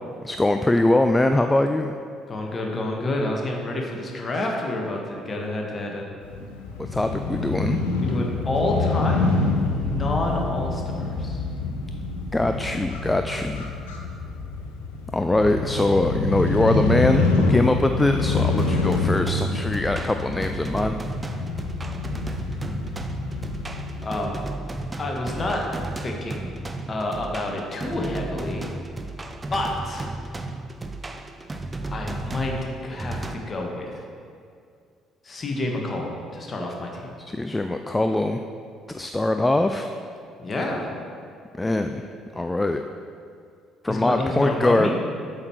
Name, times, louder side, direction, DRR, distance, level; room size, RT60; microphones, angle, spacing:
voice 1, 0.2-2.0 6.8-7.8 12.3-13.7 15.1-21.0 37.3-38.4 38.9-39.9 41.5-42.1 42.3-42.8 43.8-45.0, left 2 dB, 15° left, 7 dB, 0.4 m, -22 dB
voice 2, 2.3-6.1 8.0-9.3 9.8-11.4 24.0-24.4 25.0-25.6 26.0-26.5 26.9-28.7 29.5-30.1 31.9-32.5 32.8-34.0 35.2-37.1 40.4-40.9 43.9-45.0, left 1 dB, 30° left, 0 dB, 1.5 m, -28 dB
Crow / Motorcycle, 6.2-24.1, left 3 dB, 75° left, 0.8 m, -26 dB
sound 1, 18.6-33.3, right 2 dB, 20° right, 0.7 m, -34 dB
8.4 x 6.5 x 4.6 m, 2.3 s
figure-of-eight pair, 50°, 0 cm